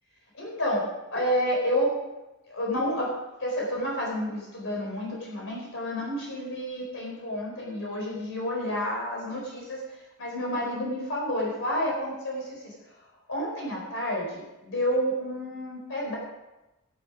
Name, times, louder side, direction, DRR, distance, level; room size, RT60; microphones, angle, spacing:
voice 1, 0.3-1.9 2.5-3.1 3.4-9.8 10.2-12.7 13.3-16.2, equal, 65° left, -2 dB, 4.4 m, -30 dB
15.5 x 9.7 x 5.1 m, 1.0 s
head